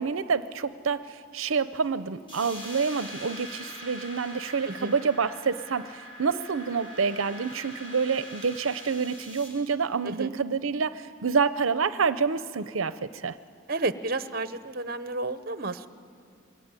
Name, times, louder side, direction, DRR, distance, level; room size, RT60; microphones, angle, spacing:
voice 1, 0.0-13.0 13.2-13.4, right 5 dB, 80° right, 13 dB, 0.6 m, -28 dB
sound 1, 2.3-9.5, equal, 25° left, 7.3 m, -43 dB
voice 2, 13.7-15.9, right 2 dB, 45° right, 12 dB, 0.9 m, -31 dB
27.5 x 22.5 x 9.0 m, 2.3 s
head